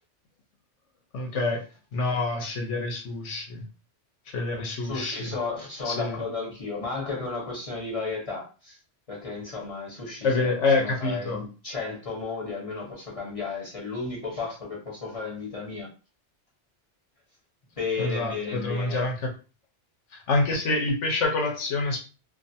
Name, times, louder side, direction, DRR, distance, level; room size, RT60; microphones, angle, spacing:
voice 1, 1.1-1.6 1.9-3.7 4.3-5.3 5.8-6.2 10.2-11.4 18.0-19.3 20.1-22.0, left 3 dB, 85° left, 1.1 m, -27 dB
voice 2, 4.8-8.8 9.1-15.9 17.8-19.0, left 4 dB, 30° left, 1.0 m, -33 dB
2.5 x 2.5 x 2.7 m
omnidirectional pair, 1.2 m